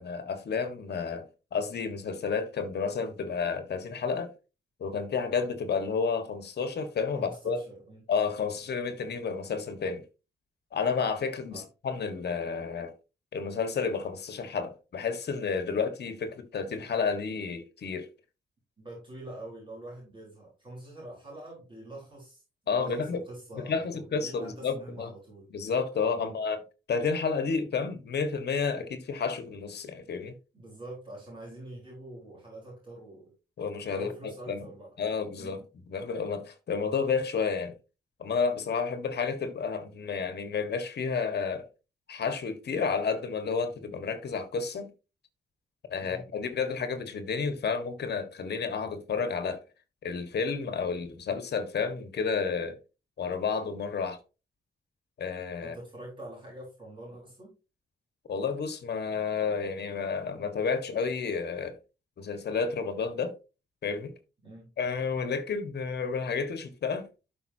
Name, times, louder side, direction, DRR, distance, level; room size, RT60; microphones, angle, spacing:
voice 1, 0.0-4.3 4.8-7.6 8.1-10.0 10.7-12.9 13.3-18.1 22.7-23.2 23.5-25.1 25.5-26.6 26.9-30.3 33.6-34.7 35.0-35.6 35.9-37.7 38.2-41.7 42.1-44.9 45.9-49.6 50.0-52.8 53.2-54.2 55.2-55.7 58.3-61.8 62.2-63.3 63.8-64.1 64.8-67.1, left 5 dB, 55° left, 1.5 m, -31 dB
voice 2, 7.1-8.1 11.5-11.7 18.8-25.5 26.1-26.4 30.5-33.3 33.9-34.9 35.3-35.7 46.0-46.3 55.6-57.5 64.4-64.7, right 1 dB, 25° right, 4.2 m, -45 dB
12.0 x 5.4 x 2.8 m
wide cardioid pair, 180°, 20 cm